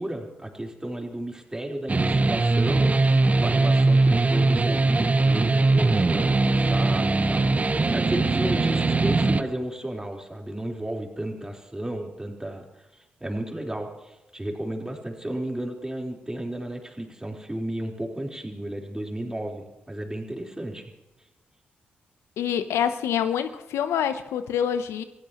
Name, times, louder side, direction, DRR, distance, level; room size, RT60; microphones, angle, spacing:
voice 1, 0.0-7.5 7.9-12.6 12.9-20.8, right 1 dB, 15° right, 0 dB, 4.1 m, -33 dB
sound 1, 1.9-9.4, right 3 dB, 35° right, 1.0 m, -21 dB
voice 2, 22.4-25.0, left 9 dB, 80° left, 11 dB, 0.7 m, -26 dB
26.5 x 16.0 x 3.0 m, 1.0 s
hypercardioid pair, 40°, 4 cm